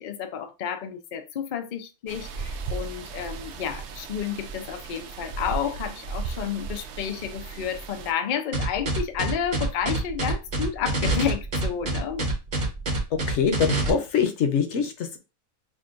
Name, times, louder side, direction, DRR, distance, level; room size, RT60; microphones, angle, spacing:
voice 1, 0.0-12.3, left 8 dB, 85° left, 0.4 m, -31 dB
sound 1, 2.1-8.1, right 5 dB, 65° right, 0.7 m, -36 dB
sound 2, 8.5-13.9, right 2 dB, 45° right, 1.1 m, -26 dB
voice 2, 13.3-15.2, left 7 dB, 60° left, 0.9 m, -24 dB
6.1 x 2.2 x 2.5 m
omnidirectional pair, 1.5 m